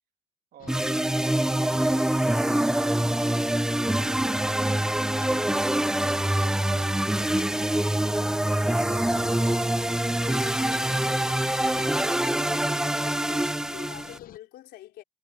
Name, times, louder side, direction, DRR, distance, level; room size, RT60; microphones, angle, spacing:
voice 1, 0.5-1.0 1.4-5.4 6.2-7.7 7.9-9.3 10.5-11.6, right 11 dB, 65° right, 3.0 m, -49 dB
sound 1, 0.6-14.4, left 12 dB, 60° left, 0.8 m, -47 dB
sound 2, 0.7-14.2, right 1 dB, 5° right, 0.3 m, -25 dB
voice 2, 12.8-15.0, left 14 dB, 75° left, 4.6 m, -46 dB
cardioid pair, 110°, 17 cm